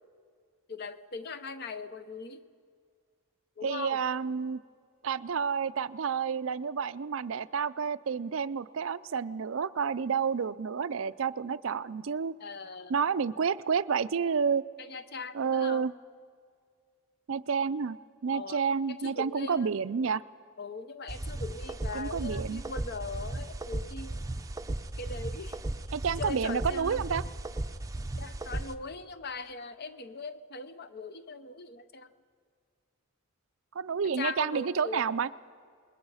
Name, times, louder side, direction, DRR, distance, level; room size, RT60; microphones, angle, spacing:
voice 1, 0.7-2.4 3.6-4.0 12.4-13.0 14.8-15.9 18.3-18.6 18.9-19.7 20.6-24.3 25.0-25.8 26.2-27.0 28.2-32.1 34.2-35.1, left 4 dB, 45° left, 11 dB, 0.8 m, -40 dB
voice 2, 3.6-4.6 5.0-12.4 12.9-14.6 15.3-15.9 17.3-18.0 18.2-20.2 21.9-22.6 25.9-27.2 33.8-35.3, right 6 dB, 60° right, 15 dB, 0.4 m, -30 dB
sound 1, 21.1-28.8, right 2 dB, 15° right, 0.6 m, -36 dB
27.5 x 21.0 x 5.6 m, 2.1 s
head